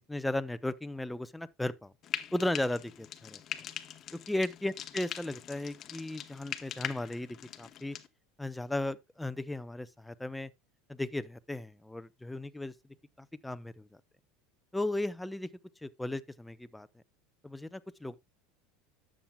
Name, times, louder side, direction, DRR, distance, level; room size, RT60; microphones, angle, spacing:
voice 1, 0.0-1.9 2.3-3.4 4.3-8.0 8.4-10.5 10.9-12.7 13.2-13.9 14.7-15.5 15.8-16.9 17.4-18.1, left 1 dB, 5° left, 0.7 m, -35 dB
Frying (food), 2.0-8.1, left 10 dB, 40° left, 0.9 m, -42 dB
12.5 x 7.5 x 2.2 m
supercardioid pair, 110°, 0 cm